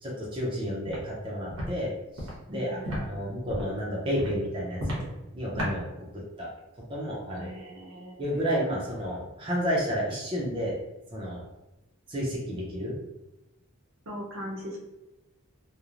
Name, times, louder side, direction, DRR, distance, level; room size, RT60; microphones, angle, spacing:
voice 1, 0.0-5.1 5.3-5.8 6.4-6.5 6.9-7.5 8.2-10.7 11.1-11.4 12.1-12.9, equal, 25° right, -4 dB, 0.5 m, -31 dB
Walk footsteps, 0.9-1.0 1.5-1.7 2.1-2.3 2.8-3.0 3.5-3.7 4.2-4.3 4.8-5.0 5.6-5.7, equal, 85° right, 0.9 m, -32 dB
voice 2, 2.5-3.1 7.3-8.2 14.1-14.8, equal, 65° right, -3 dB, 0.6 m, -39 dB
3.0 x 2.0 x 2.4 m, 0.97 s
head